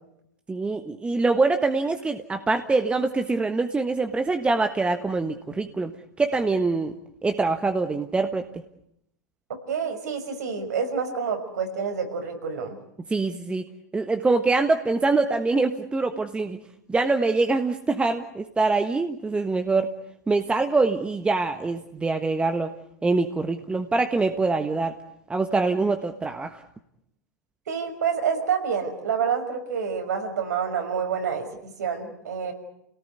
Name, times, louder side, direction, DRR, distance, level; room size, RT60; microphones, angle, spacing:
voice 1, 0.5-5.9 6.2-6.9 7.2-8.5 13.1-13.7 13.9-16.6 16.9-19.9 20.3-22.7 23.0-24.9 25.3-26.6, right 3 dB, 10° right, 7 dB, 1.4 m, -24 dB
voice 2, 9.7-12.8 27.7-32.5, right 6 dB, 75° right, 4 dB, 5.9 m, -28 dB
30.0 x 18.5 x 9.6 m, 0.78 s
hypercardioid pair, 105°, 9 cm